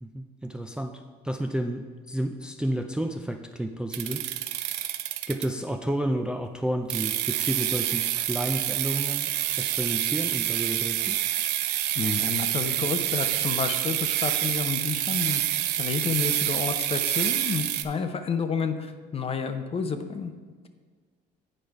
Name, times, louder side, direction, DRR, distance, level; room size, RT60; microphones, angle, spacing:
voice 1, 0.0-4.3 5.3-9.3 9.6-11.2, right 1 dB, 5° right, 5 dB, 0.4 m, -31 dB
sound 1, 3.9-5.7 6.9-17.8, right 13 dB, 85° right, 0.5 m, -27 dB
voice 2, 11.9-15.4 15.8-20.3, left 5 dB, 35° left, 8 dB, 0.7 m, -30 dB
8.9 x 5.0 x 4.6 m, 1.5 s
cardioid pair, 110°, 17 cm